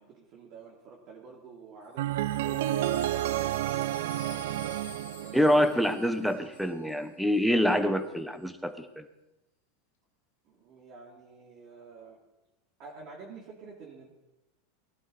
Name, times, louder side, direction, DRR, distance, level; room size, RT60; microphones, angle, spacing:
voice 1, 0.0-3.4 10.4-12.2 12.8-14.1, right 4 dB, 45° right, -3 dB, 3.1 m, -49 dB
Wind chime, 1.8-7.1 7.3-7.4 7.6-8.1, left 8 dB, 85° left, 2.8 m, -50 dB
sound 1, 2.0-6.0, right 13 dB, 75° right, 0.4 m, -30 dB
voice 2, 5.3-9.0, equal, ahead, 10 dB, 1.2 m, -26 dB
18.5 x 12.0 x 4.3 m, 0.94 s
supercardioid pair, 120°, 0 cm